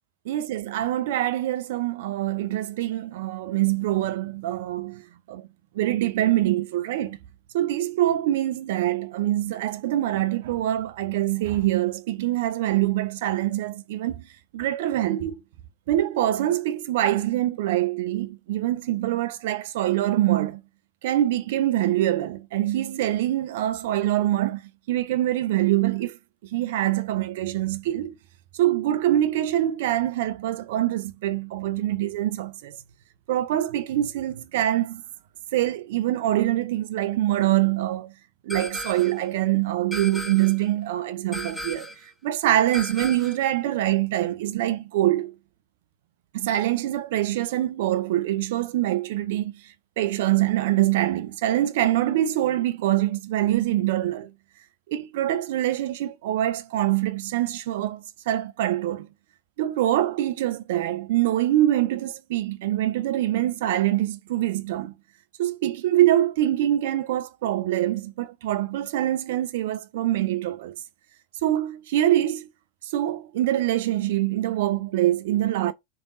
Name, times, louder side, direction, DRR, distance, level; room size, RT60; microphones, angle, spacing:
voice 1, 0.3-5.5 5.7-7.2 7.5-14.2 14.5-15.4 15.9-20.6 21.0-24.6 24.9-26.2 26.5-28.1 28.5-32.8 33.3-35.0 35.5-38.1 38.4-41.9 42.2-45.3 46.3-49.6 50.0-54.3 54.9-59.1 59.6-64.9 65.4-70.8 71.4-72.5 72.8-75.7, right 13 dB, 60° right, 0.5 m, -24 dB
sound 1, 38.5-39.2 39.9-40.6 41.3-42.0 42.7-43.5, left 1 dB, ahead, 1.2 m, -36 dB
3.4 x 2.5 x 3.7 m
figure-of-eight pair, 85°, 0 cm